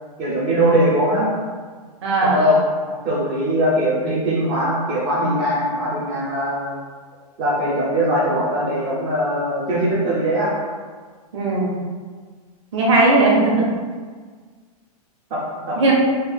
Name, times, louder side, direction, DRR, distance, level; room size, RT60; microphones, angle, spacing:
voice 1, 0.2-1.3 2.2-2.6 2.9-6.8 7.4-10.5 15.3-15.9, equal, 15° right, -9 dB, 0.4 m, -21 dB
voice 2, 2.0-2.4 11.3-11.7 12.7-13.7 15.8-15.9, right 2 dB, 45° right, -4 dB, 1.1 m, -17 dB
3.5 x 2.3 x 4.2 m, 1.5 s
supercardioid pair, 175°, 20 cm